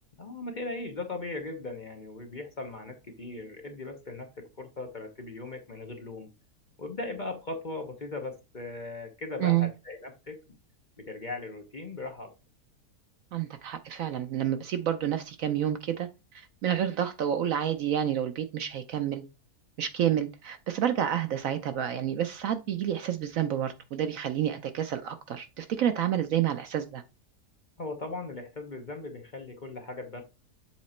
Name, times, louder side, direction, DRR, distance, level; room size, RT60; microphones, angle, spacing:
voice 1, 0.2-6.3 6.8-10.6 11.0-12.3 27.8-30.2, left 2 dB, 35° left, 0.9 m, -38 dB
voice 2, 9.4-9.7 13.3-19.2 19.8-27.0, right 10 dB, 65° right, 0.9 m, -29 dB
7.3 x 3.8 x 4.3 m
omnidirectional pair, 1.7 m